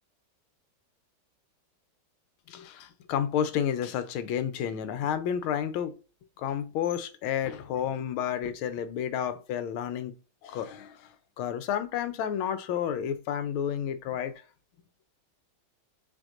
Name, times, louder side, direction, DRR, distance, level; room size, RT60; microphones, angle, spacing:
voice 1, 2.5-6.0 6.4-10.1 10.4-11.0 11.4-14.3, left 9 dB, 85° left, 1.5 m, -31 dB
7.0 x 2.9 x 2.5 m
omnidirectional pair, 2.3 m